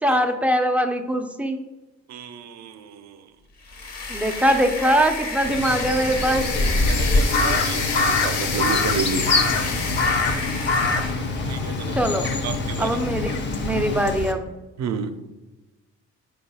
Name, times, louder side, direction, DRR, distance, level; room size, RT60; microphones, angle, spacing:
voice 1, 0.0-1.6 4.1-6.5 12.0-12.3 12.8-14.5, equal, 5° right, 6 dB, 0.4 m, -22 dB
voice 2, 2.1-3.2 6.8-9.3 11.5-12.0 12.4-12.9 14.8-15.2, right 7 dB, 60° right, 9 dB, 0.5 m, -31 dB
sound 1, 3.6-11.3, left 3 dB, 60° left, 0.9 m, -32 dB
Crow, 5.4-14.3, left 2 dB, 40° left, 0.6 m, -25 dB
sound 2, 5.5-14.2, left 4 dB, 90° left, 0.6 m, -29 dB
4.3 x 2.3 x 4.1 m, 1.1 s
cardioid pair, 90°, 30 cm